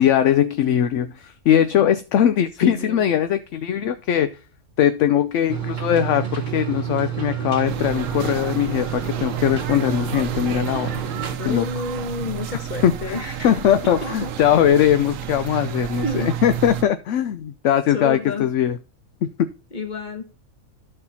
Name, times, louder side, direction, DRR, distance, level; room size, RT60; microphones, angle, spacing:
voice 1, 0.0-4.4 4.8-10.9 11.4-11.7 12.8-18.8 19.2-19.3, left 10 dB, 65° left, 11 dB, 0.8 m, -20 dB
voice 2, 2.6-3.0 11.4-13.6 14.0-14.3 16.0-16.3 17.9-18.5 19.7-20.3, left 2 dB, 35° left, 4 dB, 1.6 m, -30 dB
sound 1, 5.5-11.4, right 9 dB, 35° right, 1.2 m, -28 dB
sound 2, 7.7-16.8, right 10 dB, 70° right, 0.9 m, -31 dB
13.0 x 4.4 x 4.1 m, 0.33 s
omnidirectional pair, 1.5 m